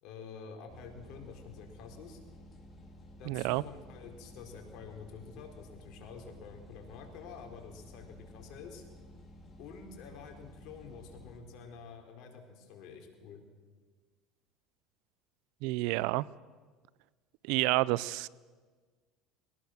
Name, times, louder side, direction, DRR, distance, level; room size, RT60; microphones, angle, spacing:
voice 1, 0.0-2.2 3.2-8.8 9.6-13.4, left 6 dB, 65° left, 3 dB, 4.2 m, -48 dB
sound 1, 0.7-11.4, left 1 dB, 30° left, 4.3 m, -53 dB
voice 2, 3.3-3.6 15.6-16.3 17.4-18.3, right 20 dB, 75° right, 22 dB, 0.5 m, -29 dB
22.0 x 18.5 x 6.5 m, 1.4 s
supercardioid pair, 95°, 0 cm